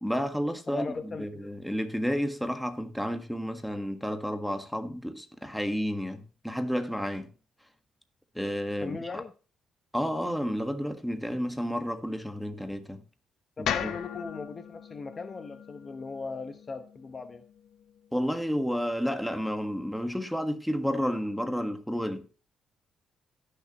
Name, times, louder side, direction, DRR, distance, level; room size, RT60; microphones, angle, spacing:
voice 1, 0.0-7.3 8.3-9.0 9.9-13.0 13.6-13.9 18.1-22.3, equal, ahead, 1.5 m, -31 dB
voice 2, 0.7-1.3 8.8-9.3 13.6-17.4, left 4 dB, 35° left, 0.9 m, -38 dB
sound 1, 13.6-17.8, left 9 dB, 75° left, 0.9 m, -37 dB
16.5 x 6.8 x 3.0 m
cardioid pair, 90°, 0 cm